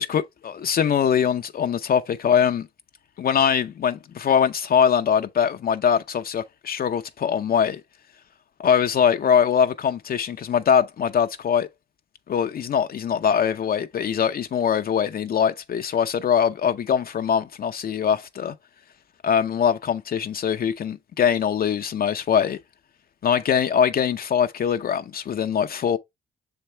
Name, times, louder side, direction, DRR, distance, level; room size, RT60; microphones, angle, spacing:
voice 1, 0.0-2.7 3.2-7.8 8.6-11.7 12.3-18.5 19.2-22.6 23.2-26.0, left 8 dB, 50° left, 0.6 m, -22 dB
6.5 x 4.4 x 3.3 m
cardioid pair, 90°, 20 cm